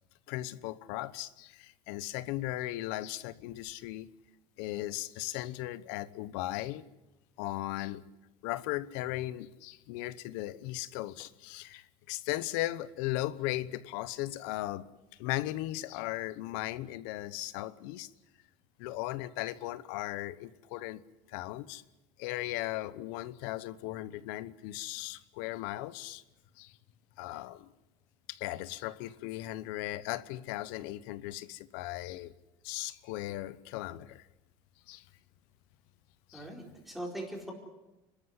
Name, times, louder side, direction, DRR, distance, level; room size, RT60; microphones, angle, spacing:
voice 1, 0.3-4.1 4.6-6.8 7.4-8.1 8.4-14.9 15.2-18.1 18.8-21.0 21.3-21.8 22.2-26.2 26.6-26.8 27.2-27.7 28.3-32.3 32.6-34.3 34.9-35.0 36.3-36.5, left 16 dB, 80° left, 1.0 m, -37 dB
voice 2, 36.3-37.5, right 1 dB, ahead, 4.5 m, -40 dB
30.0 x 13.5 x 9.7 m
cardioid pair, 165°, 10 cm